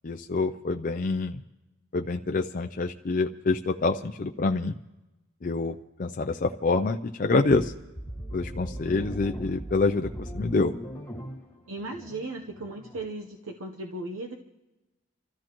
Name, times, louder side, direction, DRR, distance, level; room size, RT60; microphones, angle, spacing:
voice 1, 0.0-1.4 1.9-4.7 5.4-7.7 8.3-10.7, left 3 dB, 40° left, 5 dB, 0.4 m, -26 dB
sound 1, 7.5-13.1, equal, 10° left, 1.7 m, -39 dB
voice 2, 11.7-14.3, right 2 dB, 80° right, 2 dB, 0.9 m, -36 dB
28.5 x 13.5 x 3.0 m, 1.0 s
head